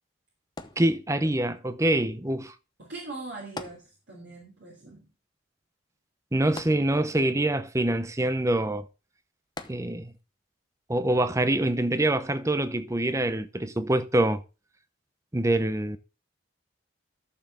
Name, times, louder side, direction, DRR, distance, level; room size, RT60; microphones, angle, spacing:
sound 1, 0.6-1.5 3.6-4.4 4.7-4.8 6.6-7.4 9.6-10.3 11.0-11.1, left 3 dB, 20° left, 0.8 m, -42 dB
voice 1, 0.8-2.5 6.3-8.9 9.7-10.1 10.9-14.4 15.3-16.0, right 1 dB, 15° right, 0.7 m, -25 dB
voice 2, 2.8-5.1, right 3 dB, 55° right, 3.1 m, -41 dB
14.0 x 7.0 x 3.7 m
head